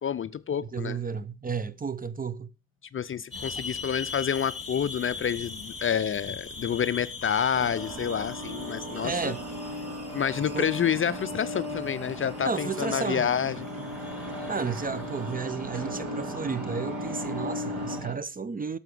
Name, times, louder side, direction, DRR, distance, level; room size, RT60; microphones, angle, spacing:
voice 1, 0.0-1.0 2.9-9.3 10.1-13.6, left 8 dB, 30° left, 0.6 m, -28 dB
voice 2, 0.6-2.5 9.0-9.4 10.5-10.7 12.4-13.3 14.5-18.8, right 5 dB, 20° right, 0.7 m, -32 dB
sound 1, 3.3-15.3, left 4 dB, 15° left, 2.7 m, -41 dB
sound 2, 4.5-18.2, right 2 dB, 5° right, 4.6 m, -45 dB
sound 3, 7.5-18.0, left 1 dB, 45° right, 2.7 m, -37 dB
12.5 x 7.1 x 5.0 m
hypercardioid pair, 60°, 40 cm